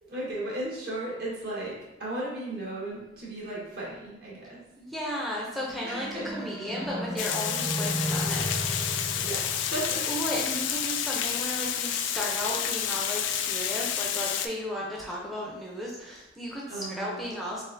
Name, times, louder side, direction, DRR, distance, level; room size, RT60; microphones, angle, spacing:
voice 1, 0.0-4.6 5.8-6.4 9.2-10.1 11.2-11.5 16.7-17.3, right 1 dB, 60° right, -5 dB, 1.4 m, -35 dB
voice 2, 4.8-8.4 10.0-17.6, equal, ahead, -4 dB, 0.5 m, -34 dB
sound 1, 5.2-10.7, equal, 35° right, 0.8 m, -35 dB
Water, 7.2-14.5, left 9 dB, 85° left, 0.3 m, -30 dB
4.0 x 3.5 x 2.6 m, 0.93 s
head